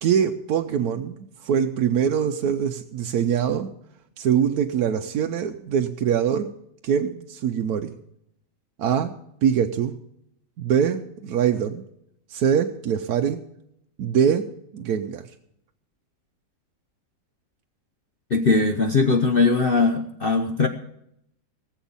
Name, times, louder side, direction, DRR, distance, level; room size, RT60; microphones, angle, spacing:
voice 1, 0.0-3.7 4.2-6.5 6.8-8.0 8.8-9.1 9.4-9.9 10.6-11.8 12.3-13.4 14.0-14.4 14.7-15.3, right 8 dB, 70° right, 5 dB, 1.1 m, -23 dB
voice 2, 18.3-20.7, left 4 dB, 45° left, 5 dB, 0.8 m, -20 dB
19.0 x 7.1 x 7.1 m, 0.75 s
omnidirectional pair, 1.8 m